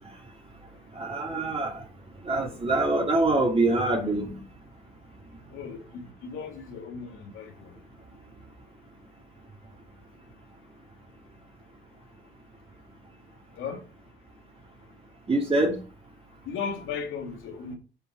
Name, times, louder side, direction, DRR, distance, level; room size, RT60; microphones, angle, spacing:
voice 1, 1.0-1.8 2.3-4.3 15.3-15.8, right 2 dB, 30° right, 2.5 m, -24 dB
voice 2, 5.5-7.7 13.6-13.8 16.5-17.7, left 6 dB, 90° left, 2.6 m, -36 dB
9.5 x 5.6 x 4.7 m
cardioid pair, 90°, 20 cm